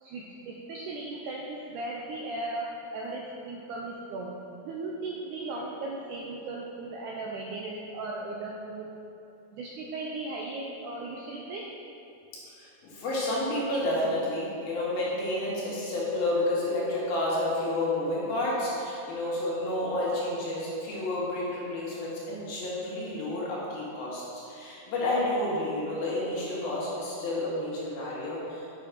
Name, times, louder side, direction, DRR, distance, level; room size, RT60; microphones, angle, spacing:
voice 1, 0.0-2.7 2.9-4.4 4.6-8.9 9.5-11.6, right 2 dB, 80° right, -2 dB, 1.8 m, -37 dB
voice 2, 12.6-28.6, left 1 dB, 75° left, -6 dB, 3.7 m, -30 dB
8.0 x 6.6 x 5.1 m, 2.8 s
omnidirectional pair, 4.4 m